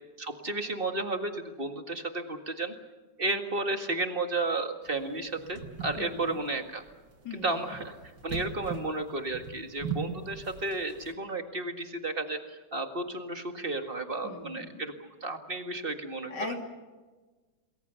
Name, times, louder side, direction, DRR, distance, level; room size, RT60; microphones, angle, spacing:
voice 1, 0.2-2.7 3.2-6.8 7.4-8.0 8.2-14.9 15.2-16.5, right 2 dB, 30° right, 6 dB, 2.0 m, -33 dB
sound 1, 4.9-11.1, right 5 dB, 75° right, 2.7 m, -40 dB
voice 2, 6.0-6.4 7.2-7.6 14.2-14.8 16.3-16.7, left 4 dB, 70° left, 3 dB, 3.5 m, -39 dB
28.0 x 21.0 x 7.0 m, 1.3 s
omnidirectional pair, 1.9 m